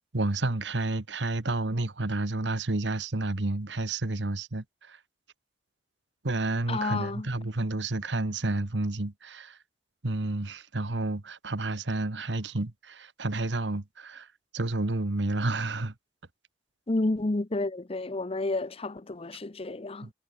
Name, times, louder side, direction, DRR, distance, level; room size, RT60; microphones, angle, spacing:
voice 1, 0.1-5.0 6.2-9.6 10.0-14.3 14.5-15.9 20.0-20.1, right 2 dB, 80° right, 1.5 m, -30 dB
voice 2, 6.7-7.3 16.9-20.1, left 2 dB, 35° left, 0.8 m, -30 dB
head